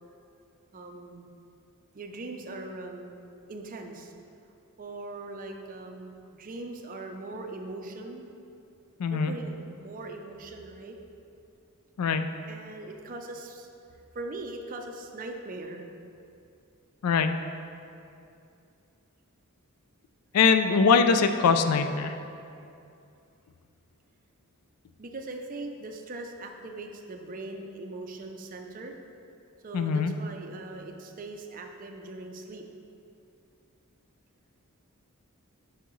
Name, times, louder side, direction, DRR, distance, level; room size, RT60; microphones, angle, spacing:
voice 1, 0.7-1.3 1.9-3.2 3.5-4.1 4.8-8.2 9.1-11.0 12.5-13.7 14.1-15.8 25.0-29.0 29.6-32.6, right 2 dB, 40° right, 3 dB, 0.5 m, -40 dB
voice 2, 9.0-9.3 12.0-12.2 17.0-17.3 20.3-22.1 29.7-30.1, left 5 dB, 90° left, 8 dB, 0.4 m, -22 dB
8.0 x 4.8 x 3.1 m, 2.6 s
head